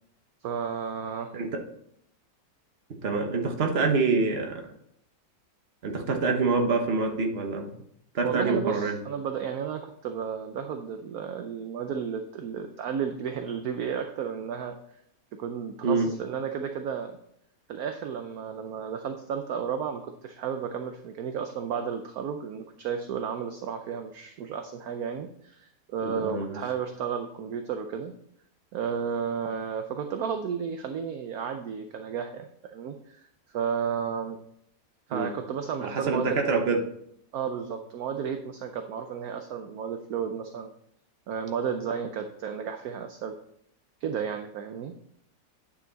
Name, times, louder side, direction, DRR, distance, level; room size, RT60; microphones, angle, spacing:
voice 1, 0.4-1.3 8.2-14.8 15.3-17.2 17.7-28.1 28.7-33.2 33.5-34.4 35.1-36.3 37.3-40.7 41.3-43.4 44.0-44.9, right 7 dB, 65° right, 6 dB, 1.0 m, -33 dB
voice 2, 3.0-4.6 5.8-7.7 8.1-9.0 15.8-16.1 26.0-26.6 35.1-35.3 35.8-36.8, right 4 dB, 40° right, 3 dB, 1.2 m, -26 dB
9.3 x 5.7 x 4.0 m, 0.72 s
omnidirectional pair, 2.0 m